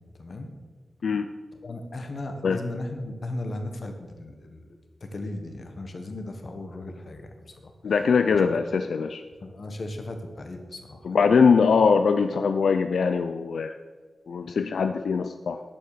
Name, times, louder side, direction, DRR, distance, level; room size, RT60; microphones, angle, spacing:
voice 1, 0.2-0.5 1.6-4.7 5.0-7.7 8.3-8.4 9.4-11.1, left 2 dB, 45° left, 6 dB, 1.4 m, -36 dB
voice 2, 7.8-9.2 11.0-13.7 14.3-15.6, left 5 dB, 80° left, 8 dB, 0.4 m, -22 dB
10.5 x 7.7 x 6.7 m, 1.4 s
wide cardioid pair, 150°, 0 cm